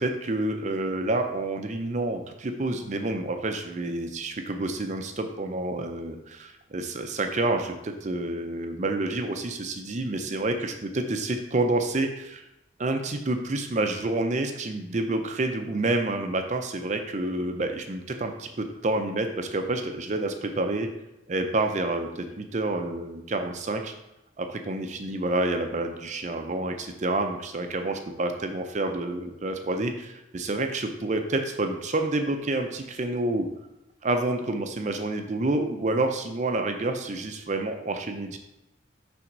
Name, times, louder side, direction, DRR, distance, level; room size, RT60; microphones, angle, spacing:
voice 1, 0.0-12.4 12.8-20.9 21.3-23.9 24.4-33.5 34.0-38.4, right 2 dB, 40° right, 6 dB, 0.5 m, -28 dB
5.9 x 3.5 x 5.3 m, 0.91 s
head